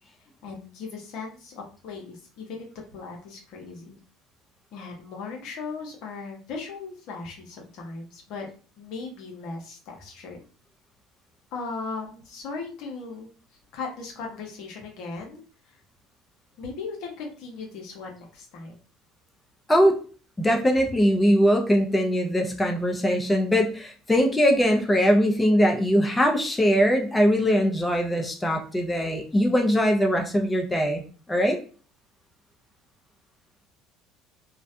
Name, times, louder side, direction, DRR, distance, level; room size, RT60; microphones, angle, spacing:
voice 1, 0.4-4.0 4.7-8.5 8.8-10.4 11.5-13.3 13.7-15.4 15.6-15.8 16.6-18.8, left 4 dB, 65° left, 0 dB, 0.7 m, -37 dB
voice 2, 19.7-20.0 20.4-31.0 31.3-31.6, equal, 15° left, 2 dB, 0.5 m, -21 dB
2.4 x 2.0 x 2.6 m, 0.39 s
hypercardioid pair, 75°, 0 cm